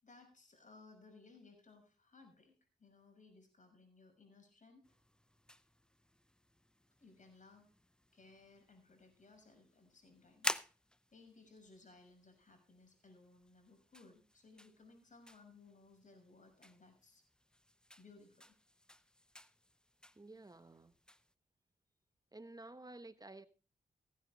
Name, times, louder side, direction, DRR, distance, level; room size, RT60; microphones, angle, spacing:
voice 1, 0.0-4.9 7.0-7.7 8.1-10.5 11.1-17.2 18.0-18.5, left 3 dB, 45° left, 6.4 m, -62 dB
sound 1, 4.8-21.3, left 1 dB, 5° left, 0.7 m, -50 dB
voice 2, 20.1-20.9 22.3-23.5, right 2 dB, 20° right, 1.2 m, -52 dB
16.0 x 9.5 x 4.2 m
supercardioid pair, 45°, 17 cm